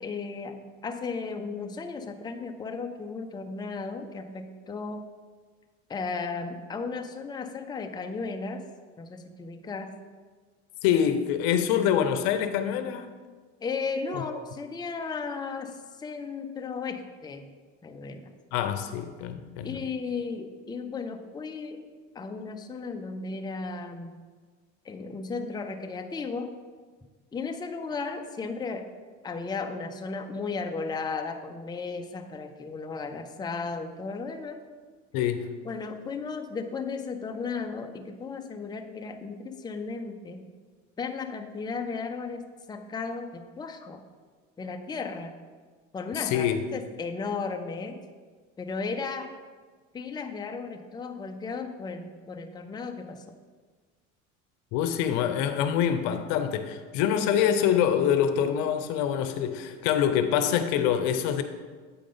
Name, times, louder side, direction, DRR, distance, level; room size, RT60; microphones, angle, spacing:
voice 1, 0.0-5.0 5.9-8.6 9.0-10.0 13.6-17.5 17.8-18.3 19.6-21.8 22.1-24.1 24.8-26.5 27.3-28.9 29.2-34.6 35.6-40.4 41.0-44.0 44.6-45.4 45.9-48.0 48.6-49.3 49.9-53.2, left 4 dB, 10° left, 6 dB, 0.5 m, -35 dB
voice 2, 10.8-13.1 14.1-14.2 18.5-19.8 35.1-35.5 46.1-46.6 54.7-61.4, left 9 dB, 70° left, 9 dB, 0.7 m, -25 dB
8.5 x 4.9 x 3.8 m, 1.5 s
supercardioid pair, 90°, 37 cm